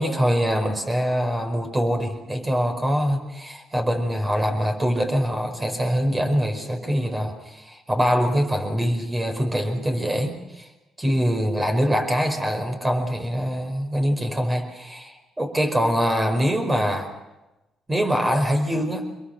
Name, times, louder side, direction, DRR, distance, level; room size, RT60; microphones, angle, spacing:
voice 1, 0.0-10.7 11.0-17.1 17.9-19.1, equal, 20° right, 5 dB, 5.1 m, -24 dB
25.0 x 22.5 x 6.0 m, 1.0 s
cardioid pair, 90°, 0 cm